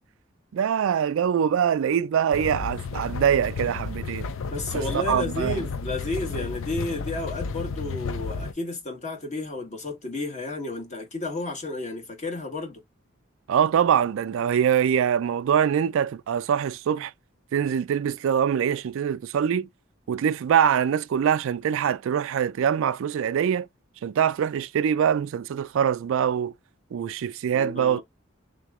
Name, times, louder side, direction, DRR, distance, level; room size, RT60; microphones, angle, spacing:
voice 1, 0.5-4.3 4.9-5.6 13.5-17.1 17.5-19.7 20.1-23.7 24.0-26.5 26.9-28.0, right 8 dB, 65° right, 0.3 m, -23 dB
sound 1, 2.3-8.5, left 4 dB, 70° left, 0.5 m, -32 dB
voice 2, 4.5-12.8 27.5-28.0, left 2 dB, 35° left, 1.4 m, -32 dB
3.7 x 3.0 x 3.5 m
head